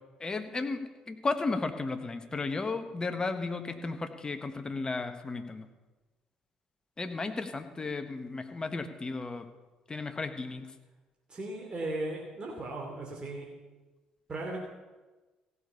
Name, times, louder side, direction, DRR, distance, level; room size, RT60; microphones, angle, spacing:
voice 1, 0.2-0.8 1.1-5.7 7.0-9.5 9.9-10.7, left 3 dB, 25° left, 8 dB, 1.4 m, -34 dB
voice 2, 11.3-13.5 14.3-14.6, right 2 dB, 35° right, -1 dB, 2.9 m, -36 dB
15.5 x 6.9 x 7.0 m, 1.2 s
hypercardioid pair, 50°, 3 cm